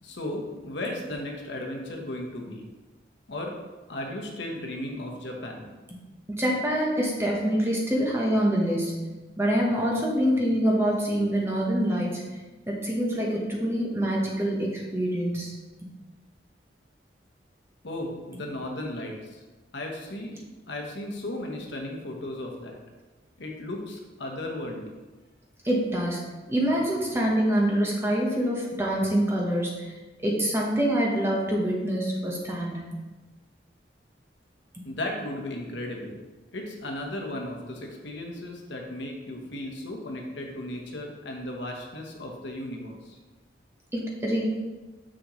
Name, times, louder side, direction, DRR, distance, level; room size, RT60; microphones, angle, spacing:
voice 1, 0.0-2.6 3.3-3.6 3.9-5.7 17.8-19.4 19.7-22.8 23.4-24.9 34.8-36.2 36.5-43.2, left 1 dB, 75° left, 1 dB, 1.1 m, -35 dB
voice 2, 6.4-9.0 9.4-12.4 12.7-15.5 15.8-15.9 25.6-29.9 30.2-32.9 34.7-34.8 43.9-44.4, equal, 15° right, -2 dB, 1.0 m, -25 dB
6.3 x 6.1 x 3.1 m, 1.2 s
head